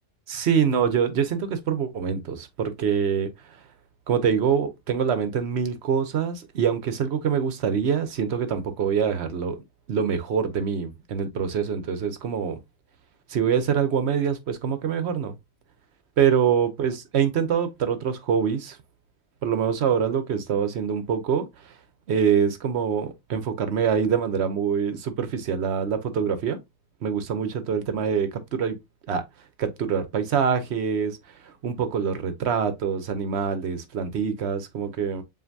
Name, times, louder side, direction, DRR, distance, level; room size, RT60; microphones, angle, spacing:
voice 1, 0.3-3.3 4.1-9.6 9.9-12.6 13.3-15.4 16.2-18.8 19.4-21.7 22.1-26.6 27.0-28.7 29.1-29.2 29.6-31.2 31.4-35.2, right 7 dB, 55° right, 0.8 m, -25 dB
7.4 x 2.5 x 2.6 m
omnidirectional pair, 1.7 m